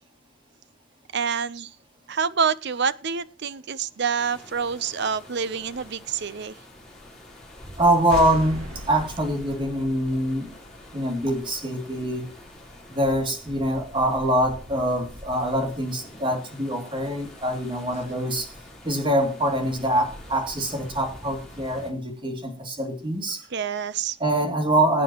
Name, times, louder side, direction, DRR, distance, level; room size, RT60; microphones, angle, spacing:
voice 1, 1.1-1.7 2.1-6.5 23.5-24.2, right 6 dB, 50° right, 16 dB, 0.6 m, -27 dB
sound 1, 4.2-21.9, left 1 dB, 5° left, 3.6 m, -45 dB
voice 2, 7.8-10.5 10.9-12.3 12.9-18.5 18.8-23.4 24.2-25.0, right 1 dB, 25° right, 4 dB, 2.6 m, -24 dB
sound 2, 8.1-11.6, right 1 dB, 80° right, 2.2 m, -38 dB
22.0 x 9.2 x 3.0 m, 0.33 s
head